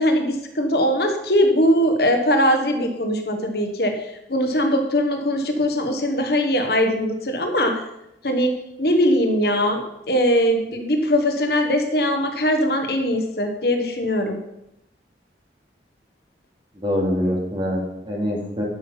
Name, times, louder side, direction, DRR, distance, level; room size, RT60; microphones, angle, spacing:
voice 1, 0.0-7.8 8.2-8.5 8.8-14.4, equal, 60° left, 4 dB, 1.3 m, -21 dB
voice 2, 16.8-18.6, equal, 30° right, -2 dB, 2.6 m, -24 dB
12.0 x 5.7 x 5.7 m, 0.85 s
head